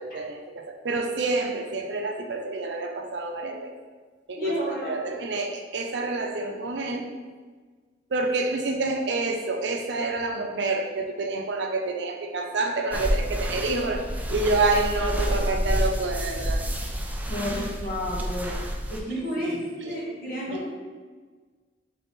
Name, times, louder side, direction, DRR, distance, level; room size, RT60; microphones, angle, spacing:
voice 1, 0.0-3.7 4.3-7.1 8.1-16.6 19.4-20.0 20.5-20.6, right 3 dB, 75° right, 4 dB, 0.5 m, -28 dB
voice 2, 4.4-4.9 17.3-18.6 18.9-19.6 19.8-20.8, equal, 55° left, -7 dB, 1.2 m, -31 dB
sound 1, 12.9-19.0, equal, 10° right, 0.4 m, -29 dB
4.1 x 3.4 x 3.5 m, 1.4 s
head